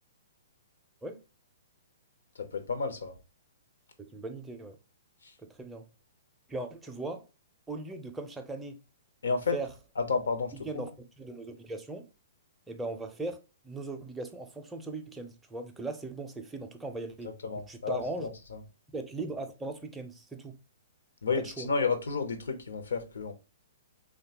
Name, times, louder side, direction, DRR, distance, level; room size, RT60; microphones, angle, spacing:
voice 1, 2.4-3.2 5.2-5.3 9.2-9.6 10.0-10.8 17.4-18.6 21.2-23.3, left 4 dB, 80° left, 0.7 m, -31 dB
voice 2, 4.0-4.8 5.4-5.8 6.5-7.3 7.7-8.8 9.5-9.7 10.6-12.1 12.7-17.3 17.7-18.3 18.9-20.6 21.4-21.7, right 2 dB, 10° right, 0.4 m, -39 dB
3.2 x 2.2 x 2.9 m
hypercardioid pair, 130°, 0 cm